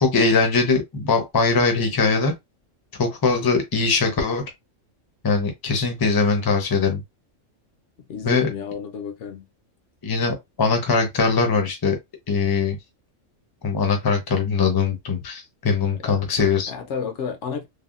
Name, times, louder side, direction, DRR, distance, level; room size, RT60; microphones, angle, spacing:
voice 1, 0.0-2.3 3.0-4.4 5.2-7.0 8.2-8.5 10.0-12.0 12.3-12.8 13.6-16.7, left 4 dB, 25° left, 0.5 m, -21 dB
voice 2, 8.0-9.5 16.0-16.2 16.7-17.7, left 6 dB, 70° left, 0.8 m, -31 dB
3.3 x 2.1 x 2.4 m
omnidirectional pair, 1.3 m